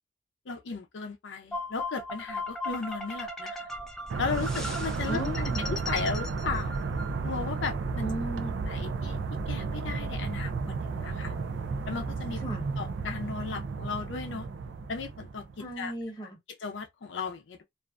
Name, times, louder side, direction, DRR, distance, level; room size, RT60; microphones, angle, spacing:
voice 1, 0.5-3.7 4.2-5.2 5.6-6.7 7.2-8.1 8.7-9.2 9.5-10.5 11.0-11.3 11.9-12.4 12.8-14.5 14.9-15.4 15.8-15.9 16.6-17.6, left 5 dB, 90° left, 0.5 m, -35 dB
sound 1, 1.5-7.6, left 1 dB, 5° left, 0.4 m, -38 dB
sound 2, 4.1-15.7, right 4 dB, 85° right, 0.4 m, -33 dB
voice 2, 5.0-5.7 8.0-8.6 12.4-12.6 15.6-16.4, equal, 25° left, 0.9 m, -36 dB
2.4 x 2.2 x 2.4 m
head